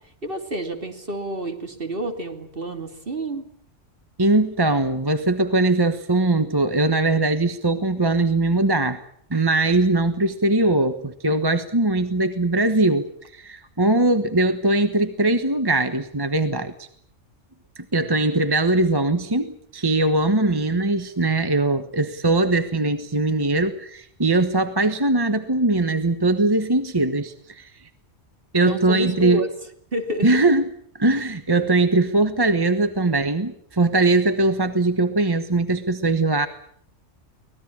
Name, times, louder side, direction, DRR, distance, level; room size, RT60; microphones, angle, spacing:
voice 1, 0.2-3.5 28.6-29.5 29.9-30.3, right 1 dB, 45° right, 5 dB, 3.1 m, -29 dB
voice 2, 4.2-9.0 9.3-13.1 13.3-16.9 17.8-27.7 28.5-29.4 30.2-30.6 31.0-36.5, right 2 dB, 20° right, 9 dB, 1.2 m, -21 dB
24.5 x 19.0 x 8.6 m, 0.66 s
omnidirectional pair, 1.3 m